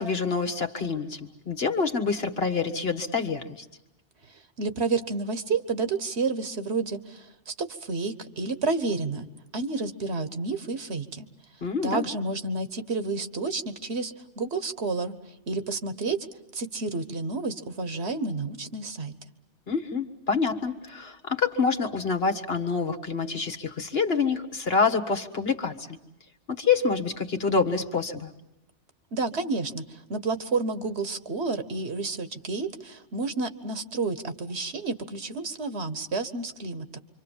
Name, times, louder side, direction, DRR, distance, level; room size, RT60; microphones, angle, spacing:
voice 1, 0.0-3.7 11.6-12.1 19.7-26.0 26.5-28.3, left 5 dB, 55° left, 5 dB, 1.9 m, -27 dB
voice 2, 4.6-9.3 9.5-11.3 11.8-15.1 15.5-16.2 16.5-19.1 29.1-37.0, right 3 dB, 60° right, 10 dB, 1.6 m, -30 dB
26.5 x 25.5 x 7.3 m, 0.89 s
omnidirectional pair, 1.2 m